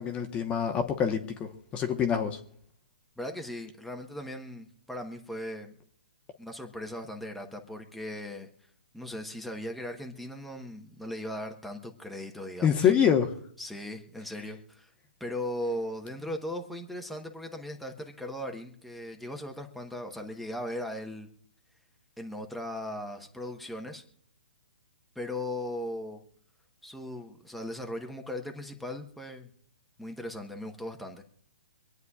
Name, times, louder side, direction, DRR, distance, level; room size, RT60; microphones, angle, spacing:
voice 1, 0.0-2.4 12.6-13.3, left 8 dB, 20° left, 5 dB, 1.1 m, -26 dB
voice 2, 3.2-5.7 6.4-8.5 8.9-12.9 13.6-14.9 15.2-21.3 22.2-24.0 25.1-26.2 26.8-29.5 30.0-31.2, left 1 dB, ahead, 2 dB, 1.0 m, -38 dB
25.5 x 9.4 x 2.4 m, 0.63 s
hypercardioid pair, 145°, 6 cm